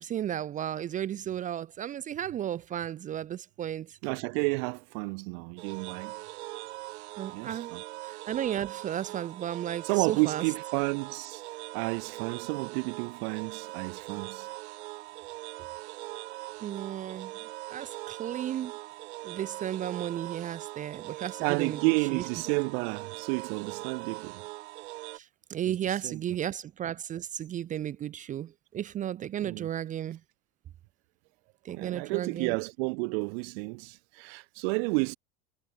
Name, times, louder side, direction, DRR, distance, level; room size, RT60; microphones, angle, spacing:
voice 1, 0.0-4.0 7.2-7.7 8.0-10.4 16.6-17.3 17.7-18.7 19.2-22.2 25.1-30.2 31.6-32.6, right 10 dB, 25° right, 0.4 m, -34 dB
voice 2, 4.0-6.1 7.3-7.8 9.8-11.4 11.7-14.5 21.4-24.4 26.0-26.2 29.4-29.7 31.7-35.2, right 34 dB, 70° right, 1.1 m, -31 dB
sound 1, 5.6-25.2, right 19 dB, 85° right, 6.0 m, -41 dB
supercardioid pair, 130°, 32 cm